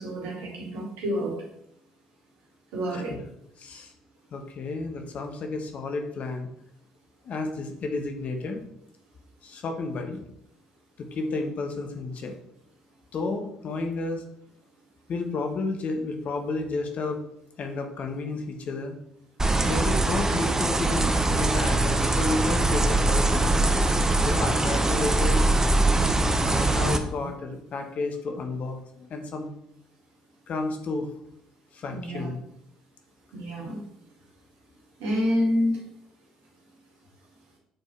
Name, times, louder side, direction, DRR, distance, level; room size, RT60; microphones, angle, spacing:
voice 1, 0.0-1.3 2.7-3.1 19.5-19.9 26.9-27.3 31.9-32.3 33.3-33.8 35.0-35.8, equal, 75° right, -2 dB, 2.2 m, -28 dB
voice 2, 3.6-3.9 4.3-6.5 7.2-8.6 9.4-10.2 11.0-12.3 13.1-14.2 15.1-17.2 17.6-18.9 19.6-23.8 24.2-25.4 26.4-29.5 30.5-31.1 31.7-32.4, left 3 dB, 50° left, 4 dB, 1.2 m, -31 dB
sound 1, 19.4-27.0, right 2 dB, 20° right, 0.8 m, -22 dB
7.7 x 4.4 x 3.3 m, 0.74 s
hypercardioid pair, 55°, 3 cm